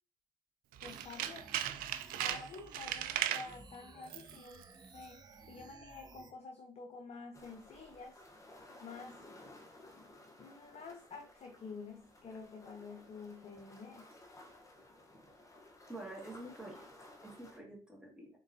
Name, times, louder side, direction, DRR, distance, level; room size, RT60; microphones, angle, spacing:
Tools, 0.7-3.5 4.0-4.4 4.6-4.7, right 12 dB, 70° right, 0.4 m, -37 dB
voice 1, 0.8-1.6 2.2-4.6 4.9-8.2 8.8-9.2 10.4-14.1, left 4 dB, 45° left, 5 dB, 0.7 m, -49 dB
sound 1, 0.9-6.3, right 3 dB, 30° right, 0.7 m, -56 dB
sound 2, 7.3-17.6, left 1 dB, 20° left, 1.0 m, -57 dB
voice 2, 15.9-16.8 17.2-18.3, right 2 dB, 5° right, -2 dB, 2.0 m, -47 dB
3.8 x 3.6 x 2.7 m, 0.37 s
hypercardioid pair, 60°, 15 cm